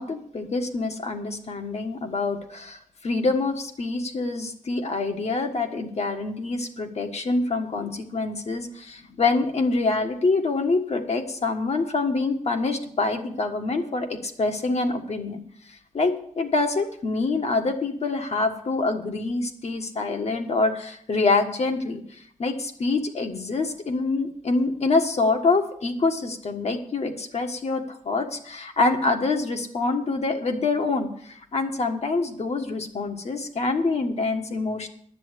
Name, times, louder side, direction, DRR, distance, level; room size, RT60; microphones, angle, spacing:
voice 1, 0.0-15.4 15.9-22.0 22.4-34.9, left 3 dB, 55° left, 5 dB, 1.5 m, -26 dB
10.5 x 7.8 x 8.4 m, 0.62 s
wide cardioid pair, 120°, 13 cm